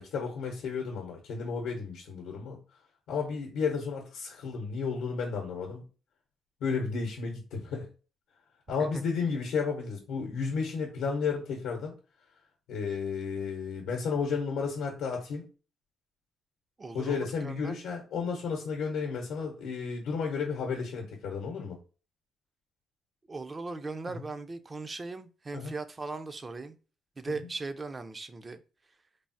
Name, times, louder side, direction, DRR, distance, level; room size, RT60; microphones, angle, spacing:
voice 1, 0.0-2.6 3.1-5.8 6.6-7.9 8.7-11.9 12.7-15.5 16.9-21.8 24.1-24.2 25.5-25.7, left 5 dB, 85° left, 0.7 m, -32 dB
voice 2, 16.8-17.7 23.3-26.8 27.2-28.6, right 3 dB, 30° right, 0.3 m, -38 dB
3.2 x 2.0 x 2.6 m
cardioid pair, 90°, 0 cm